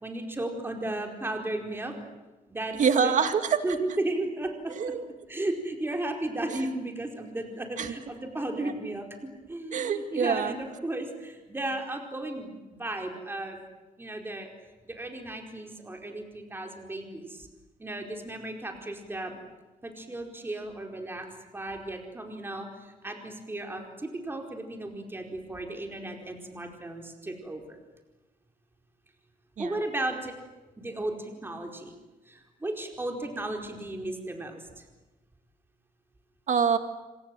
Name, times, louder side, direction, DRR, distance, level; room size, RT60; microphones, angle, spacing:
voice 1, 0.0-2.0 2.5-2.8 3.0-3.1 3.6-4.7 5.3-9.1 9.5-13.6 14.0-14.5 14.8-17.5 17.8-19.4 19.8-21.3 21.5-27.8 29.6-30.3 30.8-31.9 32.2-34.8, right 2 dB, 15° right, 2 dB, 4.5 m, -35 dB
voice 2, 2.8-3.6 4.7-5.0 7.8-7.9 8.6-8.7 9.7-10.5 29.6-29.8 36.5-36.8, right 6 dB, 60° right, 8 dB, 2.3 m, -25 dB
27.5 x 25.5 x 7.8 m, 1.1 s
wide cardioid pair, 135°, 15 cm